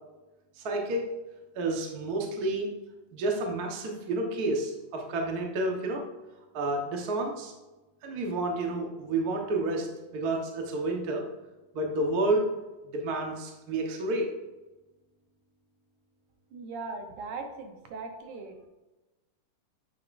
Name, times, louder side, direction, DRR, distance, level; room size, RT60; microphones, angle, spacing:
voice 1, 0.6-1.1 1.5-2.7 3.1-6.0 6.5-7.5 8.0-9.9 10.1-11.2 11.7-12.5 12.9-14.3, right 2 dB, 55° right, 1 dB, 1.0 m, -30 dB
voice 2, 16.5-18.7, right 3 dB, 70° right, 4 dB, 2.4 m, -39 dB
10.0 x 7.4 x 2.6 m, 1.1 s
omnidirectional pair, 3.7 m